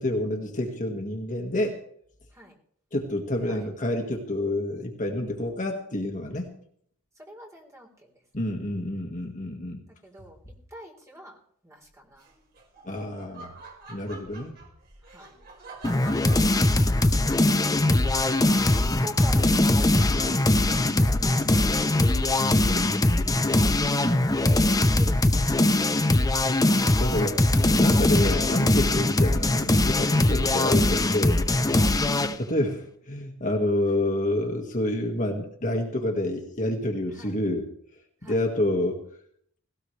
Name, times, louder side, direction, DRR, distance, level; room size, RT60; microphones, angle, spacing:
voice 1, 0.0-1.8 2.9-6.5 8.3-9.8 12.8-13.5 13.9-14.5 22.4-23.0 27.0-27.4 27.7-31.6 32.4-37.7 38.3-39.0, left 1 dB, 35° left, 2 dB, 1.8 m, -28 dB
voice 2, 7.2-8.1 10.0-10.4 10.7-11.4 11.6-12.3 15.0-15.4 15.9-16.9 17.8-22.4 24.2-25.4 30.1-30.3 31.8-32.0 37.1-37.3 38.2-38.4, right 1 dB, 15° right, -1 dB, 4.0 m, -45 dB
Laughter, 12.2-22.2, right 3 dB, 45° right, 4.6 m, -47 dB
sound 1, 15.8-32.4, left 2 dB, 15° left, 0.7 m, -21 dB
18.0 x 17.5 x 3.3 m, 0.64 s
head